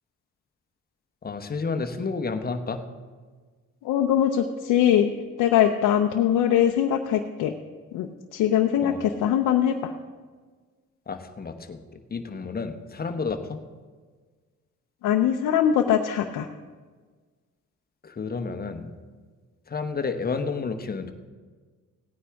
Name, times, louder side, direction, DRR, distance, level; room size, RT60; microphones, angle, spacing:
voice 1, 1.2-2.9 8.8-9.0 11.1-13.6 18.0-18.9 19.7-21.1, left 4 dB, 30° left, 7 dB, 1.0 m, -31 dB
voice 2, 3.8-5.1 5.4-7.5 7.9-9.9 15.0-16.5, left 10 dB, 90° left, 3 dB, 0.7 m, -22 dB
17.0 x 9.6 x 3.5 m, 1.5 s
cardioid pair, 90°, 30 cm